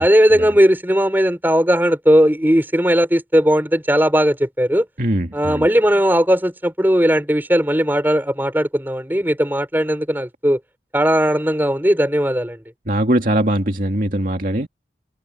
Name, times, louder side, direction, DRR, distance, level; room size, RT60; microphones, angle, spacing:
voice 1, 0.0-4.8 5.3-10.6 10.9-12.6, equal, 10° right, 4.3 m, -17 dB
voice 2, 5.0-5.7 12.9-14.7, right 1 dB, 50° right, 2.3 m, -20 dB
head